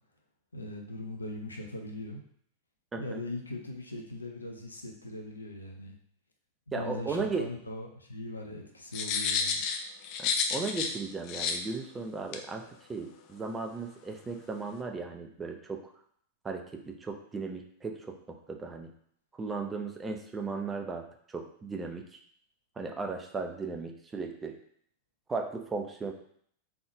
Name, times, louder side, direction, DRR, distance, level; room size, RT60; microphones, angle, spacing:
voice 1, 0.5-2.2 2.9-5.9 6.7-9.6, left 2 dB, 80° left, 2 dB, 0.7 m, -40 dB
voice 2, 2.9-3.2 6.7-7.5 10.2-15.9 16.4-18.9 19.4-21.1 21.3-22.0 22.8-24.6 25.3-26.1, right 4 dB, 15° right, 4 dB, 0.6 m, -36 dB
sound 1, 8.9-11.0 11.3-11.6 12.3-12.4, left 6 dB, 40° left, 0.5 m, -30 dB
3.9 x 3.5 x 3.7 m, 0.64 s
figure-of-eight pair, 90°, 0 cm